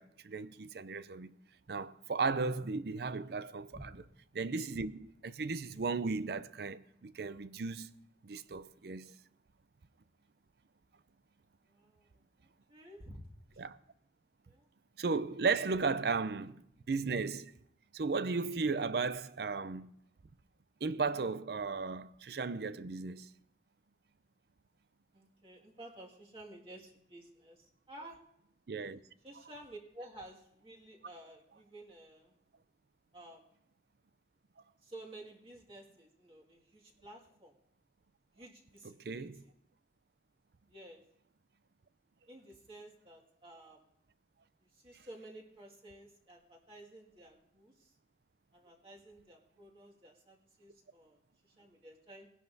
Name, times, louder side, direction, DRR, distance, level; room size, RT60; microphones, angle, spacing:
voice 1, 0.0-1.3 1.7-3.8 4.3-7.9 8.2-9.1 13.6-13.8 15.0-17.5 17.9-19.9 20.8-23.3 28.7-29.0 39.0-39.4, right 4 dB, 60° right, 0.5 m, -35 dB
voice 2, 11.6-13.2 13.5-13.6 14.5-14.7 25.1-28.2 29.2-32.4 33.1-33.6 34.8-37.5 38.3-39.5 40.7-41.0 42.3-43.9 44.6-48.0 48.5-52.3, right 1 dB, 30° right, 2.0 m, -53 dB
20.5 x 11.0 x 2.7 m
head